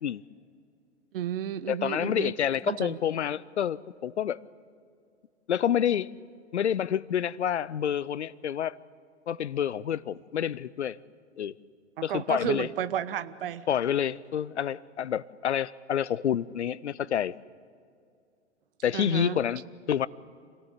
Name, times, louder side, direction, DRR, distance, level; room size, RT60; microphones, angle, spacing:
voice 1, 1.1-2.3 2.7-3.0 12.0-13.6 18.9-19.4, right 10 dB, 50° right, 13 dB, 1.1 m, -32 dB
voice 2, 1.7-4.4 5.5-6.1 6.5-8.8 9.3-11.0 11.4-11.5 12.0-12.7 13.7-17.3 18.8-20.1, left 9 dB, 70° left, 21 dB, 0.7 m, -28 dB
27.0 x 18.0 x 8.1 m, 2.3 s
figure-of-eight pair, 110°, 36 cm